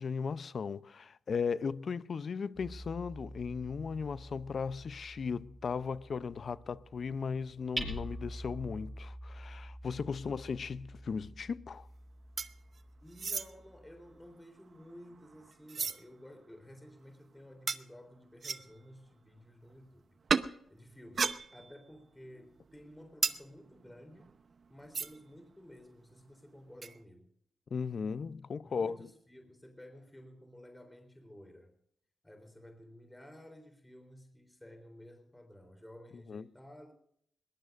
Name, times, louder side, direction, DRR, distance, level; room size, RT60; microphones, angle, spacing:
voice 1, 0.0-11.9 27.7-29.0 36.3-36.4, left 5 dB, 60° left, 0.6 m, -37 dB
Hammer, 2.6-14.3, right 1 dB, 15° right, 5.3 m, -46 dB
sound 1, 12.4-12.8 13.1-13.5 14.2-16.0 16.5-16.6 17.7-17.8 18.4-18.8 20.3-20.5 21.0-21.9 22.2-25.3 25.6-25.7 25.9-26.2 26.8-27.0, right 5 dB, 55° right, 0.8 m, -36 dB
voice 2, 13.0-20.0 20.7-24.3 24.7-27.3 28.7-31.7 32.2-36.9, equal, 10° left, 3.7 m, -53 dB
21.5 x 19.5 x 2.6 m
cardioid pair, 65°, 0 cm